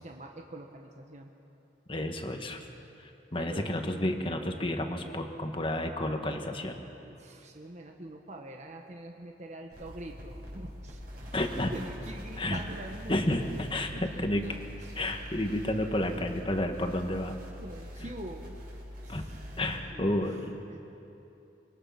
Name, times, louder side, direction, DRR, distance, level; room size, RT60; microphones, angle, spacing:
voice 1, 0.0-1.3 3.3-3.7 7.0-11.0 11.7-15.0 17.6-18.6 19.0-19.4 19.9-20.8, right 1 dB, 40° right, 2 dB, 1.4 m, -45 dB
voice 2, 1.9-2.7 3.0-6.8 11.3-11.7 12.4-12.6 13.1-14.5 15.0-17.4 19.1-19.2 19.6-20.6, left 1 dB, 30° left, 4 dB, 1.7 m, -31 dB
sound 1, 9.7-19.8, equal, 60° right, 6.1 m, -44 dB
25.5 x 23.5 x 6.0 m, 2.9 s
head